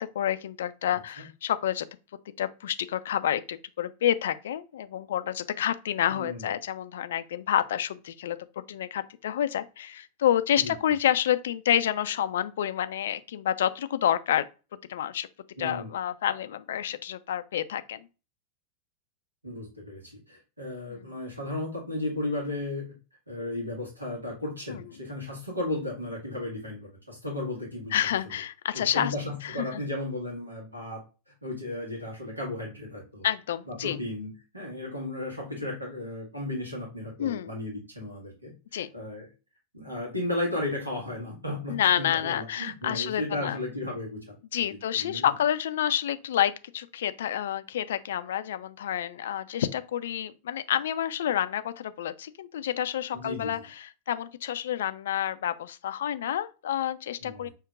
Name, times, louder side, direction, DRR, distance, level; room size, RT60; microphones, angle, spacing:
voice 1, 0.0-1.9 2.4-8.4 8.7-14.5 14.9-15.3 15.6-18.1 20.9-21.1 24.7-24.8 27.9-29.1 29.4-29.8 33.2-34.0 37.2-37.5 38.7-38.9 41.7-43.6 44.5-57.5, left 10 dB, 60° left, 0.3 m, -29 dB
voice 2, 0.9-1.2 6.1-6.5 10.6-10.7 15.6-15.9 19.4-22.9 23.3-28.0 28.7-31.0 31.3-33.3 33.6-39.3 39.7-44.3 44.7-45.3 53.1-53.6 57.2-57.5, left 2 dB, 85° right, 1.5 m, -35 dB
5.8 x 2.8 x 2.4 m
figure-of-eight pair, 90°, 0 cm